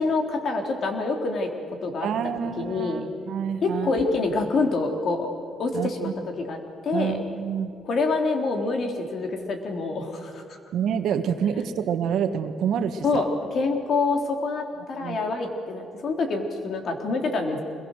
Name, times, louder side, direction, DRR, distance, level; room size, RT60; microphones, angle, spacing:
voice 1, 0.0-1.5 1.8-2.1 2.6-3.1 3.6-5.3 5.6-6.6 6.8-7.2 7.8-10.6 13.0-17.6, left 3 dB, 60° left, 4 dB, 3.5 m, -26 dB
voice 2, 2.0-3.9 5.7-6.1 6.9-7.7 10.7-13.3 15.0-15.2, right 8 dB, 75° right, 8 dB, 1.6 m, -27 dB
26.0 x 22.0 x 6.6 m, 2.6 s
cardioid pair, 90°, 0 cm